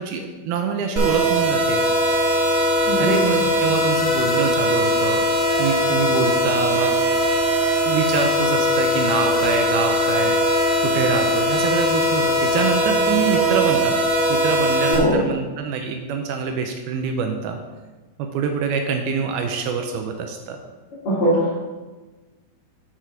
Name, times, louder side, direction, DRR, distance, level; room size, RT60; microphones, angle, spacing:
voice 1, 0.0-1.8 3.0-5.2 5.6-7.0 7.8-17.6 18.2-20.6, right 5 dB, 80° right, 4 dB, 2.3 m, -25 dB
sound 1, 1.0-15.0, equal, 20° right, 1.1 m, -20 dB
voice 2, 2.8-3.2 14.9-15.2 21.1-21.6, equal, 45° left, -9 dB, 2.1 m, -20 dB
6.6 x 6.2 x 5.7 m, 1.2 s
omnidirectional pair, 4.8 m